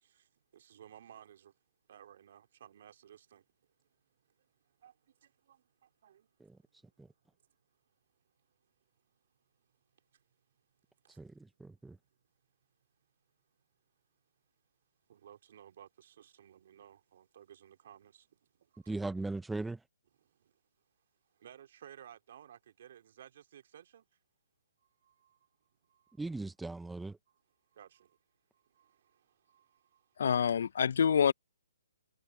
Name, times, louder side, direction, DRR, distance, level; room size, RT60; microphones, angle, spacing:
voice 1, 0.0-1.5 1.9-3.4 4.4-4.5 4.8-6.3 10.1-10.2 11.0-11.2 15.1-19.1 20.2-20.5 21.3-24.1 24.8-26.3 27.3-27.4 27.7-28.2 28.5-30.2, right 10 dB, 50° right, 3.2 m, -57 dB
voice 2, 11.2-12.0 18.9-19.8 26.2-27.2, right 2 dB, 5° right, 0.4 m, -39 dB
voice 3, 30.2-31.3, left 7 dB, 60° left, 0.5 m, -26 dB
hypercardioid pair, 160°, 0 cm